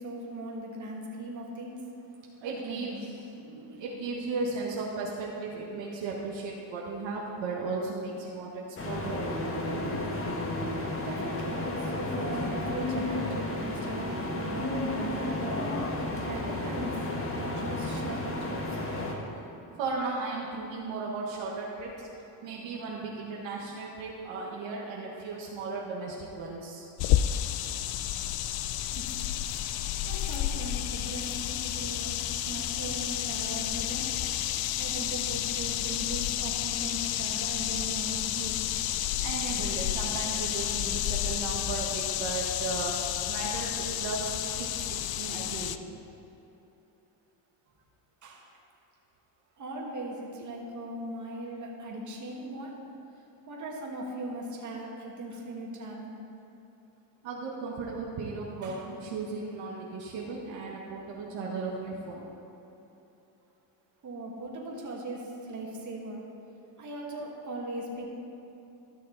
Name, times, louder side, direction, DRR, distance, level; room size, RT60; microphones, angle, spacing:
voice 1, 0.0-1.8 2.4-3.2 11.0-17.0 17.3-18.9 28.8-29.2 30.1-32.2 32.5-34.1 34.8-38.9 40.6-40.8 48.2-48.5 49.6-52.7 53.5-56.2 58.6-58.9 64.0-66.2 66.8-68.1, right 1 dB, 40° right, -2 dB, 2.0 m, -39 dB
voice 2, 2.4-2.9 3.4-9.3 19.8-21.9 22.4-26.8 39.2-42.9 43.3-44.3 44.6-45.8 57.2-62.2, right 3 dB, 65° right, -3 dB, 1.5 m, -36 dB
sound 1, 8.8-19.1, left 2 dB, 25° left, 1.3 m, -32 dB
sound 2, 27.0-45.8, left 12 dB, 50° left, 0.5 m, -31 dB
13.5 x 6.5 x 4.0 m, 3.0 s
cardioid pair, 105°, 47 cm